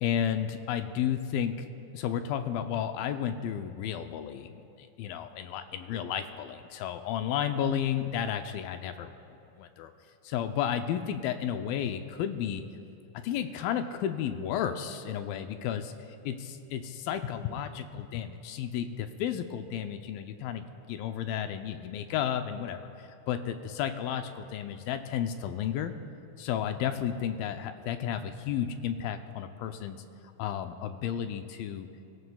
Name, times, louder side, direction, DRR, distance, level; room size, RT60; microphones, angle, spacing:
voice 1, 0.0-1.7 1.9-4.5 4.8-9.1 9.6-9.9 10.2-12.6 13.2-15.9 16.3-22.8 23.3-25.9 26.4-30.0 30.4-31.9, left 9 dB, 85° left, 8 dB, 2.4 m, -32 dB
24.0 x 15.0 x 2.3 m, 2.8 s
omnidirectional pair, 4.2 m